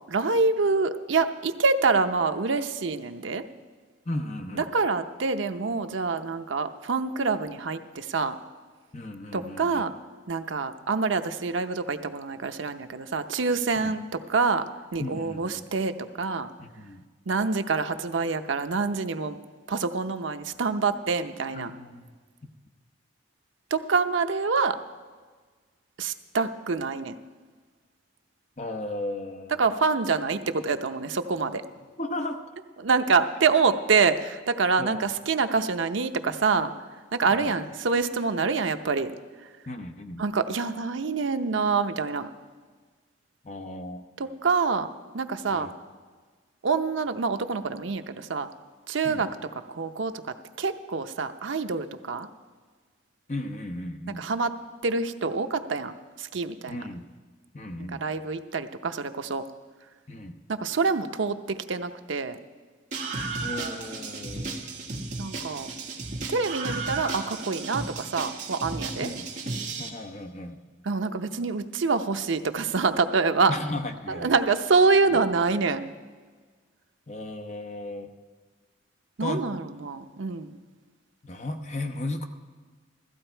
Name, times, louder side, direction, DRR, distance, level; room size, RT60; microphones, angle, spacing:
voice 1, 0.1-3.4 4.7-8.4 9.3-9.9 10.3-14.0 14.3-14.6 14.9-16.5 17.3-19.4 19.7-21.7 23.7-24.8 26.0-27.1 29.6-31.6 32.8-36.7 37.1-39.1 40.2-42.3 44.2-44.9 45.1-45.7 46.6-48.5 48.9-49.3 49.7-50.1 50.6-52.3 54.2-54.5 54.8-56.9 57.9-59.4 60.5-62.4 65.2-65.7 66.3-69.1 70.8-73.5 74.1-75.9 79.2-80.6, right 4 dB, 80° right, 8 dB, 0.7 m, -26 dB
voice 2, 4.1-4.6 8.9-9.8 13.8-13.9 15.0-15.6 16.6-17.0 21.5-22.1 28.6-29.7 32.0-32.4 34.8-35.0 37.3-37.5 39.7-40.2 43.4-44.1 45.5-45.7 49.0-49.2 53.3-54.2 56.7-57.1 57.5-58.0 60.1-60.4 63.4-64.6 69.0-69.3 69.8-70.6 73.5-74.3 75.1-75.2 77.1-78.1 79.2-79.5 81.2-82.2, left 2 dB, 35° left, 5 dB, 0.9 m, -35 dB
Screaming, 62.9-69.9, right 3 dB, 40° right, 1.6 m, -34 dB
16.0 x 14.0 x 4.5 m, 1.4 s
head